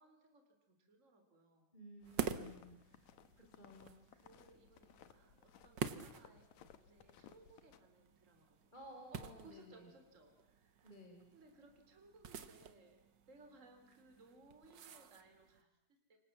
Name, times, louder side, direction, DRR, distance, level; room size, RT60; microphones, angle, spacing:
voice 1, 0.0-1.7 2.7-3.5 4.1-8.8 9.1-10.9 11.3-13.0 13.3-16.2, right 2 dB, 25° right, 5 dB, 3.8 m, -64 dB
voice 2, 1.7-2.8 3.5-4.0 8.7-9.9 10.8-11.3, left 1 dB, 15° left, 1 dB, 4.4 m, -55 dB
sound 1, 2.0-7.8, left 9 dB, 70° left, 2.4 m, -63 dB
sound 2, 2.0-15.6, right 7 dB, 50° right, 1.4 m, -49 dB
29.0 x 25.0 x 7.4 m, 0.85 s
omnidirectional pair, 3.5 m